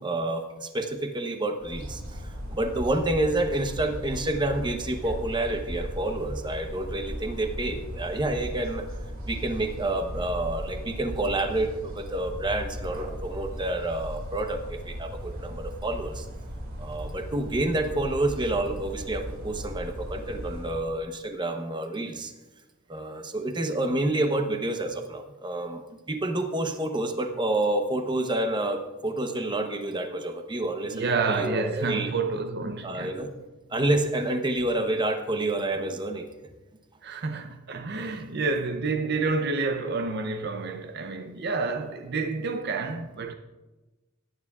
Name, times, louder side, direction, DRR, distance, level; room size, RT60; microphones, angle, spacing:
voice 1, 0.0-8.8 9.2-16.3 16.8-22.3 22.9-25.8 26.1-32.1 32.8-33.3 33.7-36.2 38.1-38.2, right 1 dB, 20° right, 0.9 m, -29 dB
sound 1, 1.6-20.8, equal, 75° right, 2.4 m, -37 dB
voice 2, 30.9-33.2 37.0-43.3, right 4 dB, 50° right, 0.6 m, -29 dB
18.0 x 9.4 x 2.4 m
head